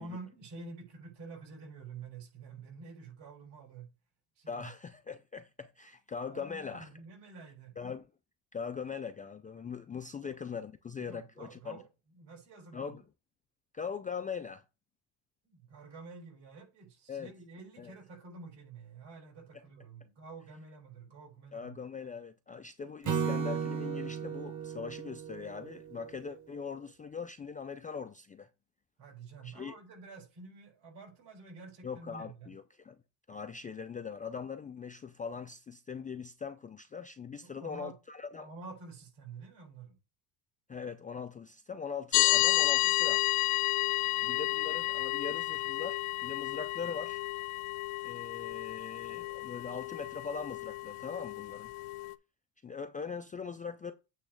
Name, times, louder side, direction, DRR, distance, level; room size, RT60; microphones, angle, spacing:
voice 1, 0.0-3.9 4.4-4.7 6.3-7.7 10.2-10.3 11.0-11.9 12.2-13.0 15.4-21.8 29.0-32.5 37.4-38.0 38.3-39.9, right 4 dB, 65° right, 5.4 m, -49 dB
voice 2, 4.5-6.9 7.8-8.1 8.5-11.8 12.7-13.0 13.7-14.6 17.1-17.3 17.8-17.9 21.5-28.5 29.4-29.7 31.8-33.0 33.3-38.5 40.7-43.2 44.2-47.2 48.0-51.7 52.6-53.9, left 6 dB, 20° left, 0.3 m, -41 dB
Acoustic guitar / Strum, 23.1-26.4, right 6 dB, 35° right, 1.5 m, -35 dB
sound 1, 42.1-52.1, left 21 dB, 80° left, 0.7 m, -31 dB
8.6 x 3.2 x 6.4 m
cardioid pair, 120°, 49 cm